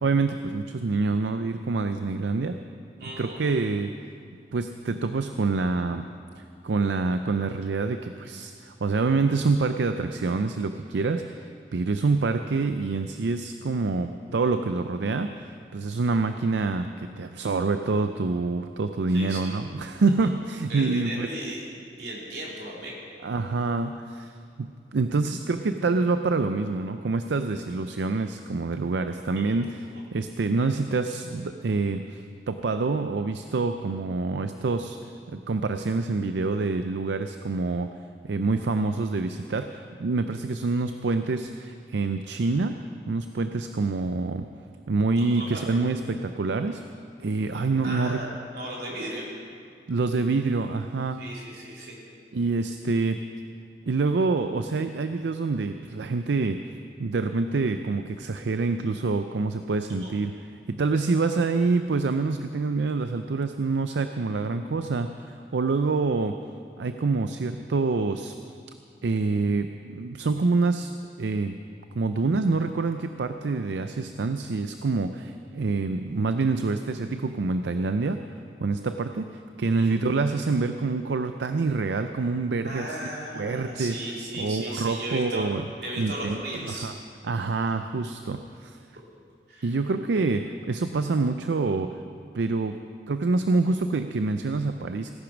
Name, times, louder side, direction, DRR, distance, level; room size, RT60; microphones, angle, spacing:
voice 1, 0.0-2.6 3.0-3.9 4.5-6.1 6.3-15.3 15.7-21.3 23.2-29.9 30.1-35.0 35.3-37.9 38.2-42.8 43.1-44.5 44.9-46.8 47.2-48.2 49.9-51.2 52.3-53.2 53.9-56.6 57.0-60.3 60.7-66.4 66.8-68.3 69.0-70.9 71.2-71.6 72.0-78.2 78.6-83.0 83.3-85.7 86.0-86.4 86.7-86.9 87.2-88.8 89.6-92.0 92.3-92.8 93.1-95.1, right 3 dB, 90° right, 8 dB, 0.5 m, -26 dB
voice 2, 3.0-3.6 19.1-19.6 20.7-21.6 22.0-22.9 29.3-29.4 45.3-45.6 47.8-48.3 48.5-49.2 51.2-52.0 60.0-60.1 82.6-85.4 85.8-86.9 89.5-89.7, right 1 dB, 70° right, -3 dB, 3.5 m, -36 dB
17.0 x 10.0 x 6.1 m, 2.3 s
head